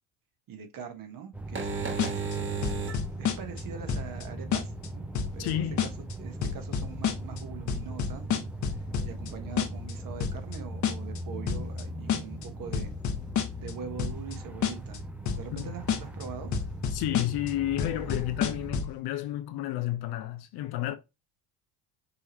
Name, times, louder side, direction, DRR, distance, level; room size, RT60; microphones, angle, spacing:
voice 1, 0.5-2.7 3.2-5.0 5.3-5.6 6.2-12.9 13.6-16.6, right 7 dB, 50° right, 1.4 m, -43 dB
sound 1, 1.3-18.9, equal, 5° right, 0.5 m, -39 dB
sound 2, 1.4-18.7, right 5 dB, 30° right, 1.2 m, -43 dB
sound 3, 2.0-2.4 2.6-3.6 3.9-4.2 4.5-4.9 5.2-5.5 5.8-6.1 6.4-7.4 7.7-9.3 9.6-9.9 10.2-10.6 10.8-11.2 11.5-11.8 12.1-12.5 12.7-13.7 14.0-14.4 14.6-15.0 15.3-15.6 15.9-16.2 16.5-17.5 17.8-19.0, left 7 dB, 45° left, 1.1 m, -29 dB
voice 2, 5.4-5.8 15.5-15.7 16.9-21.0, left 13 dB, 65° left, 0.8 m, -31 dB
5.5 x 2.9 x 3.0 m
supercardioid pair, 90°, 42 cm